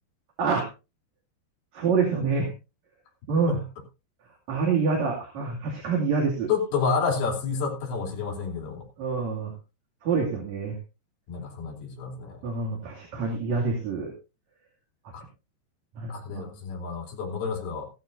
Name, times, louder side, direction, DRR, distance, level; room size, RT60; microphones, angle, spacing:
voice 1, 1.7-2.5 3.3-3.6 4.5-6.5 9.0-9.5 10.0-10.7 12.4-14.1 16.0-16.5, right 4 dB, 45° right, -1 dB, 3.3 m, -26 dB
voice 2, 6.5-8.8 11.3-12.3 15.1-15.2 16.1-17.9, left 5 dB, 60° left, -1 dB, 5.4 m, -29 dB
15.5 x 14.0 x 2.7 m, 0.29 s
omnidirectional pair, 5.1 m